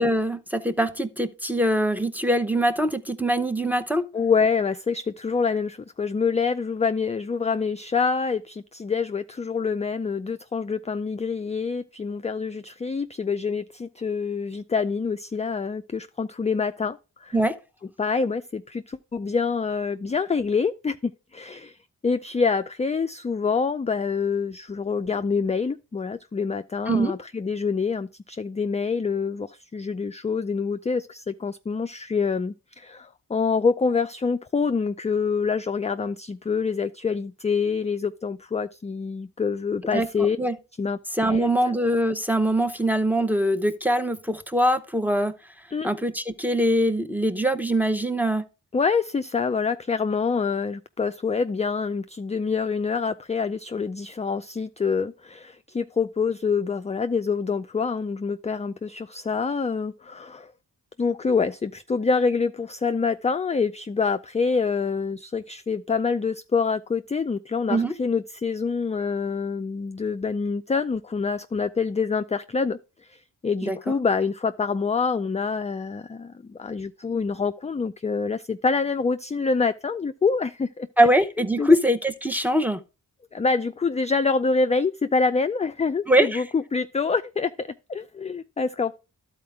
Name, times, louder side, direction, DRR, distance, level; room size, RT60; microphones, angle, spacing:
voice 1, 0.0-4.1 17.3-17.5 26.9-27.2 39.9-40.1 40.4-40.5 41.2-45.3 45.8-48.4 67.7-67.9 73.6-73.8 81.0-82.8 86.1-86.4, right 1 dB, 5° right, 0.8 m, -22 dB
voice 2, 4.1-17.4 18.0-21.8 22.0-40.4 40.8-41.0 41.3-41.5 45.7-45.9 48.7-60.5 61.0-72.8 73.1-80.9 81.6-81.7 83.3-89.0, left 5 dB, 20° left, 0.3 m, -26 dB
12.0 x 4.3 x 3.5 m
cardioid pair, 50°, 40 cm